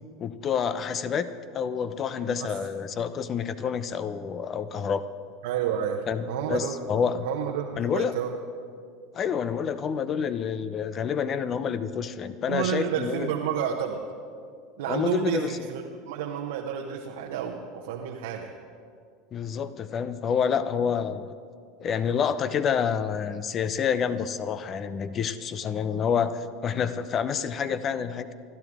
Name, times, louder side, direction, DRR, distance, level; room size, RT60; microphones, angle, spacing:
voice 1, 0.2-5.0 6.1-7.3 7.8-8.1 9.1-13.3 14.9-15.6 19.3-21.3 21.8-28.3, left 7 dB, 35° left, 13 dB, 0.8 m, -28 dB
voice 2, 5.4-6.8 7.2-8.3 12.5-14.0 14.8-18.5, right 8 dB, 65° right, 0 dB, 1.1 m, -30 dB
28.5 x 12.0 x 3.7 m, 2.2 s
figure-of-eight pair, 75°, 0 cm